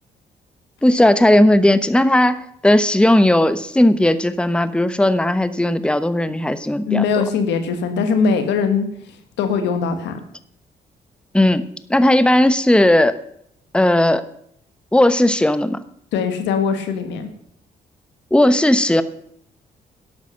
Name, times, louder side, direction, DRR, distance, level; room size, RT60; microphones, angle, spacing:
voice 1, 0.8-7.2 11.3-13.1 13.7-14.2 14.9-15.8 18.3-19.0, left 1 dB, 5° left, 12 dB, 1.0 m, -16 dB
voice 2, 6.9-8.8 9.4-10.2 16.1-17.3, left 5 dB, 85° left, 8 dB, 1.5 m, -20 dB
11.5 x 8.6 x 6.4 m, 0.70 s
supercardioid pair, 55°, 18 cm